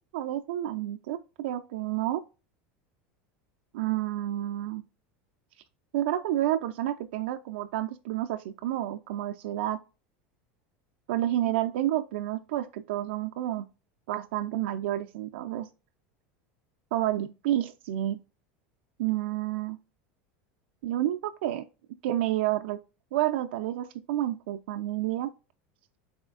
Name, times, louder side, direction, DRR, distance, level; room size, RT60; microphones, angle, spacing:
voice 1, 0.1-2.2 3.7-4.8 5.9-9.8 11.1-13.7 14.1-15.7 16.9-18.2 19.0-19.8 20.8-21.6 22.0-22.8 23.1-25.3, right 13 dB, 85° right, 0.3 m, -30 dB
4.1 x 3.1 x 2.3 m
supercardioid pair, 150°, 6 cm